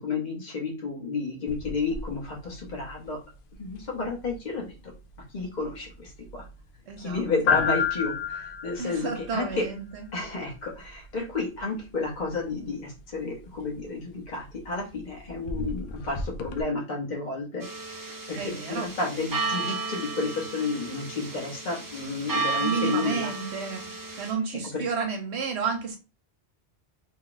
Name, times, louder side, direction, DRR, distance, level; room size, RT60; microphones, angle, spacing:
voice 1, 0.0-3.2 3.6-4.9 5.3-6.4 7.0-9.6 10.1-18.0 18.3-23.3 24.7-24.8, left 3 dB, 45° left, 1.2 m, -31 dB
sound 1, 1.5-16.6, left 5 dB, 60° left, 0.6 m, -35 dB
voice 2, 6.9-7.2 8.8-10.1 18.4-18.9 22.6-23.9 24.2-26.0, right 5 dB, 75° right, 0.9 m, -31 dB
sound 2, 17.6-24.3, right 3 dB, 25° right, 0.5 m, -33 dB
2.9 x 2.3 x 3.9 m
omnidirectional pair, 1.1 m